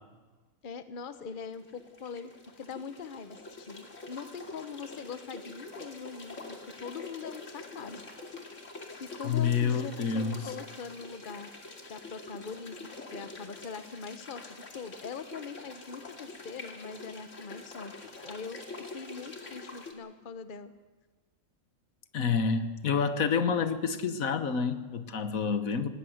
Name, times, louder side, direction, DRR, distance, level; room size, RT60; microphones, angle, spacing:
voice 1, 0.6-2.3 2.6-8.1 9.0-11.5 11.9-12.8 13.1-18.6 18.9-20.7, left 6 dB, 40° left, 11 dB, 1.1 m, -42 dB
sound 1, 1.3-19.9, left 3 dB, 60° left, 2.7 m, -45 dB
voice 2, 9.2-10.4 22.1-25.9, left 6 dB, 80° left, 11 dB, 1.6 m, -28 dB
19.0 x 17.5 x 7.9 m, 1.3 s
omnidirectional pair, 1.4 m